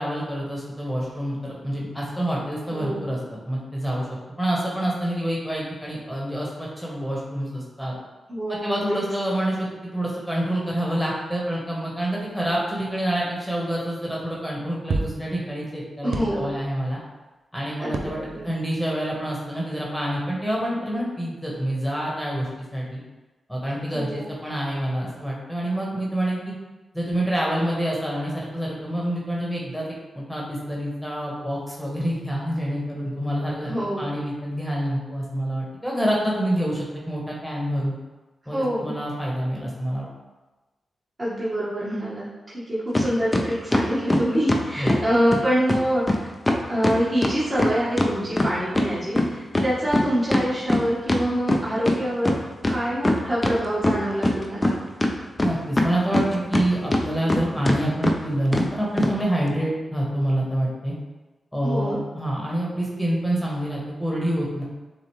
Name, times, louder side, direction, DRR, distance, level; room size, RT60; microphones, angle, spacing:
voice 1, 0.0-4.1 4.4-7.9 8.6-17.0 17.5-18.2 18.4-23.0 23.5-26.5 26.9-29.8 30.1-37.9 38.5-40.1 44.8-45.0 55.4-60.9 61.5-64.6, right 1 dB, ahead, -4 dB, 1.3 m, -27 dB
voice 2, 2.7-3.1 8.3-9.0 16.0-16.6 17.8-18.4 23.9-24.3 33.6-34.1 38.5-38.9 41.2-42.3 42.7-46.2 46.7-52.4 52.7-54.8 57.3-57.5 61.6-62.0, equal, 25° right, -9 dB, 1.5 m, -25 dB
sound 1, 14.9-15.2 16.1-16.7 17.9-18.6 19.0-19.1, right 3 dB, 80° right, 0.4 m, -30 dB
sound 2, 42.9-43.1 43.3-45.0 45.3-45.4 45.7-45.8 46.1-46.2 46.5-48.9 49.2-52.0 52.2-52.3 52.6-53.6 53.8-54.7 55.0-56.6 56.9-57.4 57.7-57.8 58.0-58.2 58.5-58.7 59.0-59.1, left 1 dB, 25° left, 0.6 m, -21 dB
6.8 x 2.5 x 3.1 m, 1.2 s
cardioid pair, 60°, 0 cm